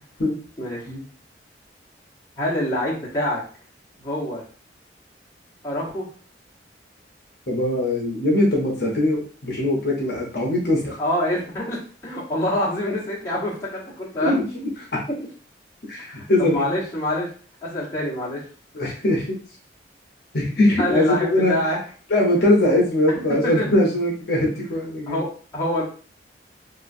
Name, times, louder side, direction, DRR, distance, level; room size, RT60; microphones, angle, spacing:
voice 1, 0.6-0.9 2.4-3.4 4.0-4.4 5.6-6.1 11.0-14.3 16.1-17.3 17.6-18.4 20.8-21.8 23.2-23.8 25.1-25.8, left 1 dB, 15° left, -7 dB, 1.0 m, -26 dB
voice 2, 7.5-11.0 14.2-14.7 15.9-16.6 18.7-19.3 20.3-21.5 22.1-25.2, left 1 dB, 55° left, -2 dB, 0.8 m, -21 dB
2.9 x 2.4 x 2.6 m, 0.42 s
head